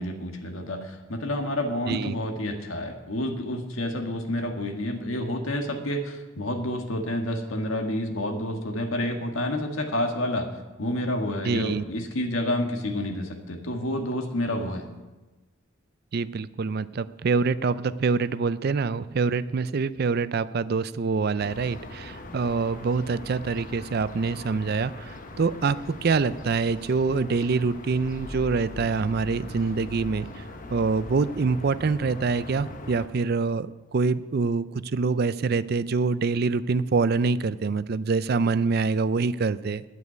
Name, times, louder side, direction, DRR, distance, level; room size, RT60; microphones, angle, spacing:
voice 1, 0.0-10.5 10.8-14.8, left 1 dB, 85° left, 4 dB, 1.6 m, -29 dB
voice 2, 1.9-2.2 11.4-11.8 16.1-30.4 30.7-39.8, right 4 dB, 50° right, 15 dB, 0.4 m, -25 dB
sound 1, 21.4-33.1, left 2 dB, 40° left, 1.0 m, -41 dB
9.5 x 8.4 x 9.4 m, 1.2 s
head